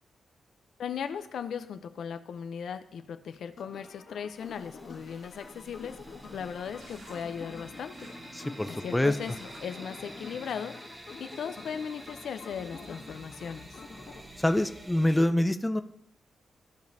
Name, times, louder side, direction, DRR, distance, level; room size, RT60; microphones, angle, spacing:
voice 1, 0.8-6.0 6.3-10.9 11.2-13.8, left 7 dB, 80° left, 10 dB, 0.5 m, -38 dB
sound 1, 3.6-14.2, left 4 dB, 65° left, 1.7 m, -48 dB
sound 2, 4.3-15.3, right 1 dB, 20° right, 1.0 m, -48 dB
sound 3, 6.7-10.9 11.3-11.8, right 1 dB, 70° right, 3.5 m, -56 dB
voice 2, 8.3-9.2 14.4-15.8, left 1 dB, 10° left, 9 dB, 0.4 m, -26 dB
14.5 x 5.2 x 2.6 m, 0.72 s
cardioid pair, 100°, 0 cm